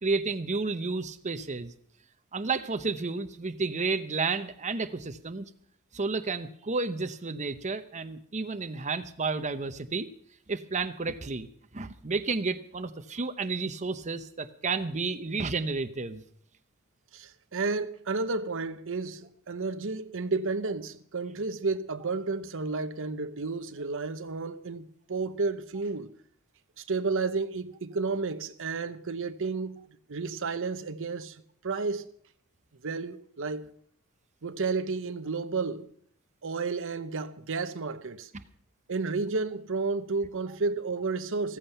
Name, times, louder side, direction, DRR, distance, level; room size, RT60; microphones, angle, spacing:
voice 1, 0.0-1.7 2.3-5.5 5.9-10.1 10.5-11.5 11.7-16.2, right 4 dB, 35° right, 0.8 m, -31 dB
voice 2, 17.1-26.1 26.8-29.8 30.1-32.1 32.8-33.7 34.4-35.9 36.4-38.3 38.9-41.6, right 4 dB, 65° right, 0.9 m, -32 dB
15.5 x 14.5 x 5.6 m
head